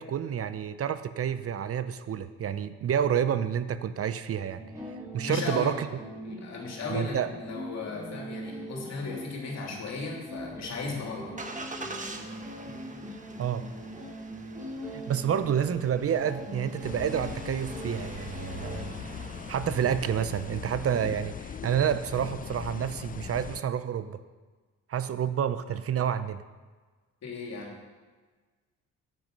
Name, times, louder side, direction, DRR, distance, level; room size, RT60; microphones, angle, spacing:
voice 1, 0.0-4.6 5.1-5.9 6.9-7.3 13.4-13.7 14.9-18.9 19.2-24.2 24.9-26.4, right 8 dB, 50° right, 12 dB, 0.7 m, -29 dB
sound 1, 4.6-19.1, equal, 10° right, 3.4 m, -42 dB
voice 2, 5.2-5.7 6.2-11.3 27.2-27.7, left 3 dB, 60° left, -1 dB, 3.1 m, -36 dB
Engine starting, 10.3-21.0, right 3 dB, 25° right, 1.3 m, -45 dB
sound 2, 16.8-23.6, left 7 dB, 30° left, 0.4 m, -40 dB
10.0 x 9.5 x 5.4 m, 1.4 s
cardioid pair, 90°, 30 cm